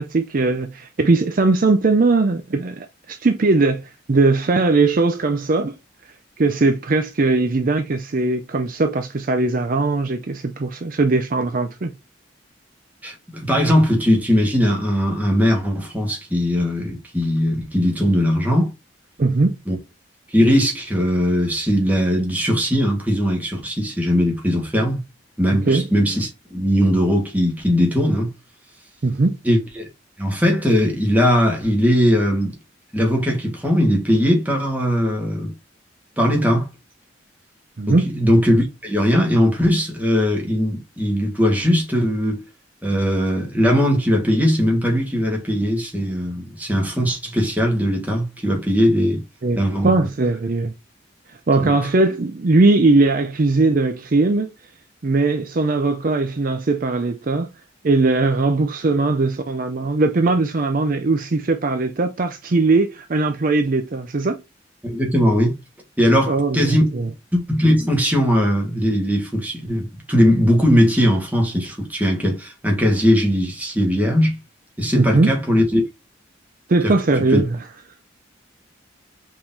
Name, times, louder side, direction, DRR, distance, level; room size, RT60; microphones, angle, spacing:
voice 1, 0.0-5.8 6.4-11.9 19.2-19.6 25.5-25.9 29.0-29.4 37.8-38.1 49.4-50.7 51.3-54.5 55.0-57.5 57.8-64.4 66.3-67.1 74.9-75.3 76.7-77.6, right 3 dB, 45° right, 0.5 m, -19 dB
voice 2, 13.0-18.7 19.7-19.8 20.3-25.0 25.4-28.3 29.4-29.9 30.2-32.5 32.9-35.5 36.2-36.7 37.9-42.4 42.8-49.2 49.6-49.9 51.6-51.7 64.8-65.6 66.0-66.9 67.3-74.4 74.8-75.8 76.8-76.9 77.3-77.4, equal, 10° right, 1.5 m, -19 dB
4.9 x 3.7 x 2.7 m
head